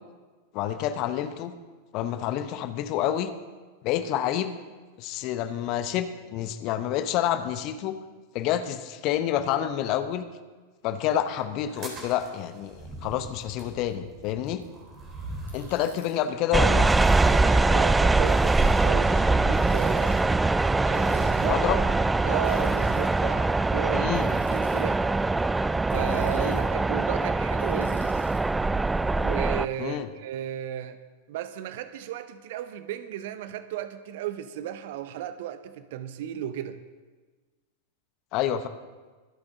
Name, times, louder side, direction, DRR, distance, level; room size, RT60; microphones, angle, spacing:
voice 1, 0.5-1.5 1.9-3.3 3.8-4.6 5.0-7.9 8.3-10.2 10.8-14.6 15.5-16.9 21.4-21.8 23.9-24.3 26.3-26.6 29.8-30.1 38.3-38.7, left 11 dB, 40° left, 10 dB, 1.0 m, -28 dB
sound 1, 11.6-15.9, right 1 dB, 25° right, 3.8 m, -42 dB
Ratchet pawl, 15.5-16.1 16.9-17.5 18.3-18.9 19.5-20.2 20.9-21.4 22.4-23.1 24.1-24.8 25.9-26.7 27.6-28.4, equal, 80° right, 4.1 m, -51 dB
sound 2, 16.5-29.7, right 3 dB, 10° right, 0.3 m, -23 dB
voice 2, 17.2-20.2 20.8-21.9 22.2-25.0 25.9-28.2 29.2-31.0 31.3-36.8, right 11 dB, 50° right, 12 dB, 0.8 m, -34 dB
24.5 x 8.8 x 3.7 m, 1.3 s
figure-of-eight pair, 90°, 0 cm